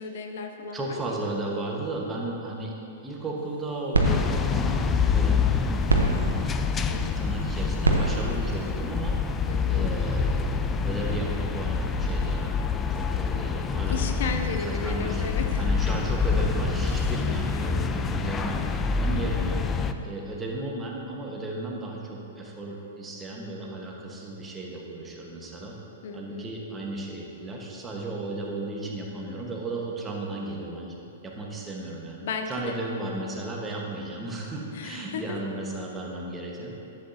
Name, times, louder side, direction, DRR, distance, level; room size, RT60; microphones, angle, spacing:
voice 1, 0.0-1.4 6.9-7.2 9.5-9.9 13.9-15.7 17.5-17.8 19.1-19.5 26.0-26.5 32.2-32.8 34.7-35.4, left 4 dB, 60° left, 5 dB, 0.6 m, -35 dB
voice 2, 0.7-2.7 3.0-5.9 6.3-6.5 7.1-9.2 9.7-14.1 14.6-15.2 15.6-18.6 19.0-19.6 20.0-25.7 26.1-36.7, right 2 dB, 15° right, -2 dB, 1.4 m, -35 dB
sound 1, 3.4-9.8, right 2 dB, 85° right, 1.0 m, -29 dB
sound 2, 4.0-19.9, left 5 dB, 20° left, 0.4 m, -26 dB
11.0 x 8.2 x 2.8 m, 2.8 s
figure-of-eight pair, 110°, 0 cm